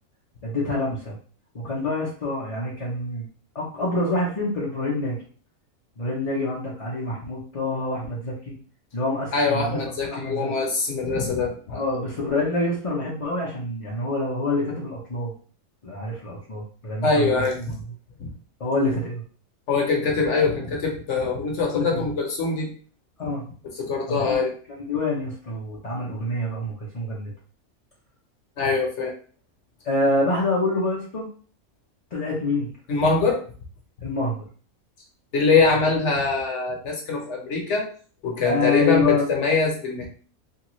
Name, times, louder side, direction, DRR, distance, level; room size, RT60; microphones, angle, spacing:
voice 1, 0.4-1.1 1.5-3.3 3.5-5.2 6.0-8.5 8.9-10.5 11.7-15.3 15.8-17.3 18.6-19.2 21.7-22.0 23.2-23.4 24.1-27.3 29.8-31.3 32.1-32.7 34.0-34.4 35.9-36.1 38.4-39.3, left 2 dB, 40° left, -6 dB, 0.5 m, -26 dB
voice 2, 9.3-11.8 17.0-17.8 18.2-18.3 19.7-22.7 23.8-24.5 28.6-29.1 32.9-33.4 35.3-37.8 38.2-40.1, left 4 dB, 60° left, 0 dB, 1.1 m, -23 dB
3.3 x 2.3 x 3.0 m, 0.42 s
omnidirectional pair, 1.5 m